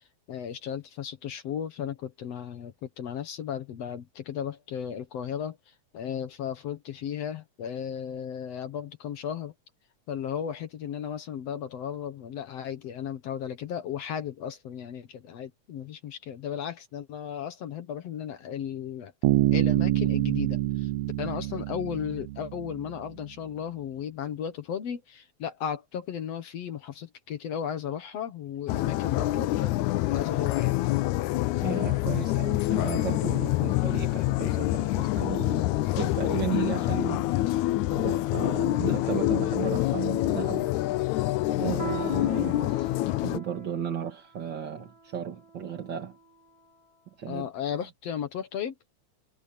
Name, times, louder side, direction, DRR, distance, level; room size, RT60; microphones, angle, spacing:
voice 1, 0.3-9.5 10.1-19.1 19.5-20.9 21.2-30.8 47.2-48.7, left 8 dB, 65° left, 2.2 m, -35 dB
Bass guitar, 19.2-22.9, right 17 dB, 80° right, 1.5 m, -26 dB
sound 1, 28.7-43.4, left 17 dB, 80° left, 2.0 m, -26 dB
voice 2, 31.6-37.7 37.9-40.7 41.5-46.2 47.2-47.5, right 8 dB, 45° right, 2.1 m, -35 dB
Piano, 41.8-46.7, right 4 dB, 25° right, 4.4 m, -43 dB
omnidirectional pair, 3.3 m